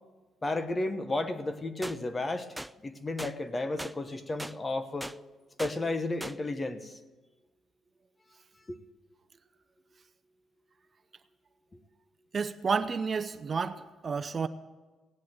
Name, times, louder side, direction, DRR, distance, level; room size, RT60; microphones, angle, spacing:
voice 1, 0.4-2.5 2.8-5.1 5.6-7.0 8.7-8.8, left 2 dB, 25° left, 10 dB, 1.1 m, -33 dB
sound 1, 1.8-2.0 2.6-2.7 3.2-3.3 3.8-3.9 4.4-4.5 5.0-5.2 5.6-5.7 6.2-6.4, right 1 dB, 5° right, 0.3 m, -38 dB
voice 2, 12.3-14.5, right 5 dB, 40° right, 11 dB, 0.7 m, -31 dB
17.5 x 8.5 x 7.8 m, 1.3 s
cardioid pair, 90°, 0 cm